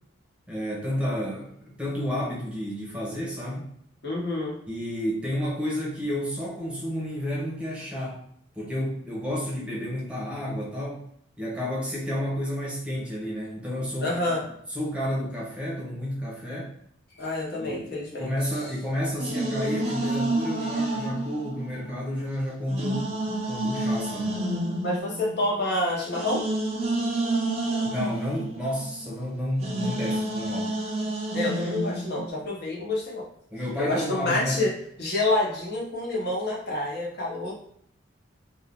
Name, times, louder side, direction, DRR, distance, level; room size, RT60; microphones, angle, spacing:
voice 1, 0.5-3.7 4.7-8.2 8.5-11.0 11.4-14.2 14.7-16.7 17.6-17.9 18.2-24.4 27.8-30.7 33.5-34.6, equal, 5° right, -5 dB, 0.9 m, -31 dB
voice 2, 4.0-4.6 14.0-14.4 17.2-18.3 24.8-26.4 31.3-33.2 33.8-34.7 35.0-37.5, left 2 dB, 55° left, -4 dB, 1.1 m, -28 dB
sound 1, 19.2-22.2 22.7-29.3 29.6-32.3, right 1 dB, 30° right, 0.4 m, -29 dB
2.7 x 2.4 x 3.5 m, 0.68 s
head